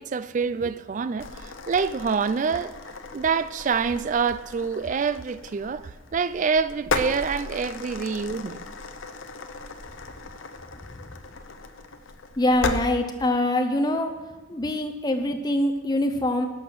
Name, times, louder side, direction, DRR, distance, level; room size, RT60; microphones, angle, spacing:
voice 1, 0.0-2.7 3.1-8.6, right 5 dB, 35° right, 0.3 m, -26 dB
sound 1, 1.2-12.8, left 3 dB, 70° left, 0.7 m, -36 dB
voice 2, 12.4-14.1 14.5-16.5, left 1 dB, 20° left, 0.6 m, -24 dB
11.5 x 6.0 x 6.2 m
head